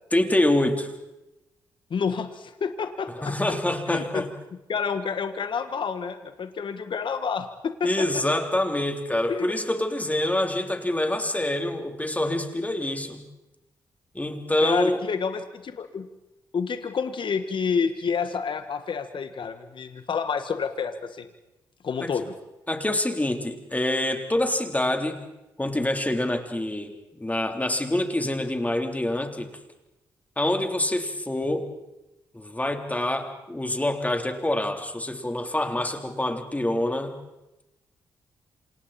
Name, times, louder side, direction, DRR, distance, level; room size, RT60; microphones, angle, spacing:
voice 1, 0.1-0.9 3.2-4.3 7.8-13.3 14.1-15.0 22.0-22.1 22.7-25.2 25.6-26.9 27.2-29.5 30.4-31.7 32.3-37.2, left 1 dB, 15° left, 4 dB, 3.6 m, -26 dB
voice 2, 1.9-3.3 3.9-4.2 4.7-8.2 9.3-9.5 14.6-16.1 16.5-21.3 21.8-22.3, left 6 dB, 55° left, 9 dB, 1.6 m, -29 dB
27.5 x 27.0 x 4.3 m, 0.97 s
hypercardioid pair, 40°, 10 cm